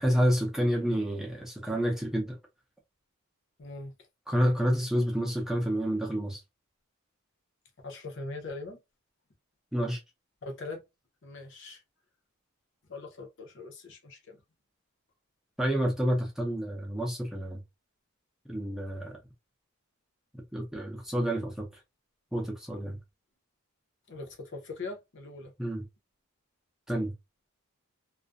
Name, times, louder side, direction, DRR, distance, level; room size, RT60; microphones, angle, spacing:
voice 1, 0.0-2.4 4.3-6.4 9.7-10.0 15.6-17.6 18.5-19.2 20.5-21.7 22.3-23.0 25.6-25.8 26.9-27.1, equal, ahead, 0.5 m, -29 dB
voice 2, 3.6-3.9 7.8-8.8 10.4-10.8 11.2-11.8 12.9-14.4 24.1-25.5, left 3 dB, 55° left, 0.7 m, -41 dB
2.4 x 2.1 x 2.5 m
head